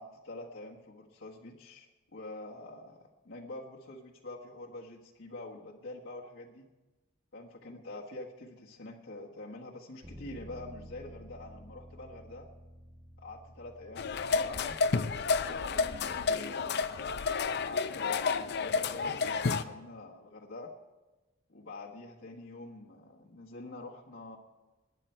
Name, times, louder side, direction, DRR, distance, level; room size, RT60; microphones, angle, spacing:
voice 1, 0.0-6.6 7.3-12.5 13.2-14.8 15.4-17.1 17.6-20.7 21.5-24.4, left 2 dB, 75° left, -3 dB, 1.5 m, -46 dB
Bass guitar, 10.0-16.3, equal, 10° right, 1.6 m, -52 dB
sound 1, 14.0-19.6, left 4 dB, 60° left, 0.6 m, -30 dB
20.0 x 9.9 x 4.5 m, 1.1 s
head